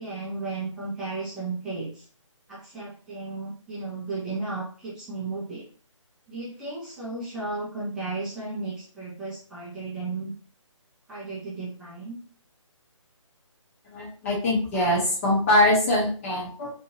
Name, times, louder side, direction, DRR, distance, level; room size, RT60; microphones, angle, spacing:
voice 1, 0.0-2.1 2.5-5.7 6.3-10.3 11.1-12.2, right 3 dB, 5° right, -9 dB, 0.6 m, -34 dB
voice 2, 13.9-16.7, left 1 dB, 25° left, -4 dB, 1.0 m, -23 dB
2.9 x 2.5 x 2.8 m, 0.43 s
figure-of-eight pair, 155°, 17 cm